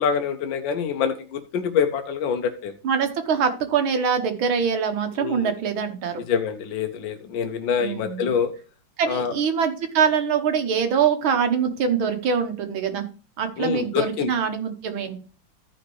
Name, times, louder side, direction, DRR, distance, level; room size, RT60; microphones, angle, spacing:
voice 1, 0.0-2.7 5.2-5.5 6.3-8.5 9.1-9.3 13.6-14.3, left 7 dB, 75° left, 6 dB, 1.4 m, -25 dB
voice 2, 2.8-6.2 7.8-8.3 9.0-13.1 13.4-15.2, right 6 dB, 80° right, 6 dB, 2.0 m, -24 dB
14.0 x 5.3 x 3.1 m, 0.37 s
omnidirectional pair, 2.2 m